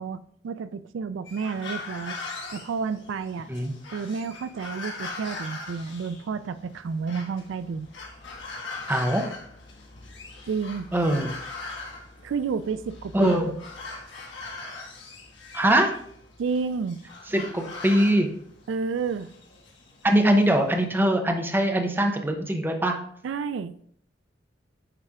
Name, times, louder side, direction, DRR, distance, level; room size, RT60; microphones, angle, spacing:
voice 1, 0.0-2.2 2.5-3.5 3.9-7.9 10.5-10.9 12.2-13.6 16.4-17.0 18.7-19.3 23.2-23.7, right 5 dB, 85° right, 13 dB, 0.3 m, -30 dB
sound 1, 1.2-20.8, left 3 dB, 85° left, 1.7 m, -41 dB
voice 2, 8.9-9.3 10.9-11.3 13.1-13.5 15.5-16.0 17.3-18.3 20.0-23.0, right 1 dB, 10° right, 3 dB, 0.8 m, -22 dB
9.6 x 3.3 x 3.6 m, 0.64 s
head